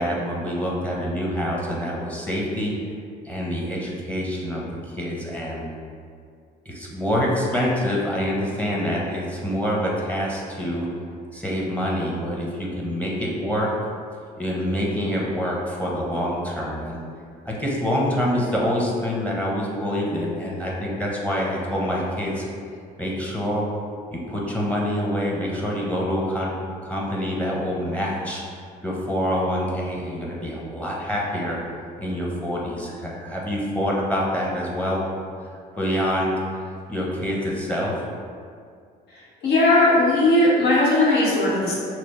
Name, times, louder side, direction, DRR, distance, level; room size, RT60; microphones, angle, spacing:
voice 1, 0.0-2.7 3.2-4.6 4.9-5.7 6.7-10.9 11.3-13.7 14.4-17.1 17.5-22.5 23.0-23.7 24.1-26.6 26.8-28.4 28.8-31.6 32.0-35.0 35.7-38.0, equal, 10° left, -4 dB, 0.8 m, -26 dB
voice 2, 39.4-41.7, left 2 dB, 75° left, -6 dB, 1.1 m, -18 dB
5.8 x 2.0 x 3.1 m, 2.2 s
cardioid pair, 110°, 17 cm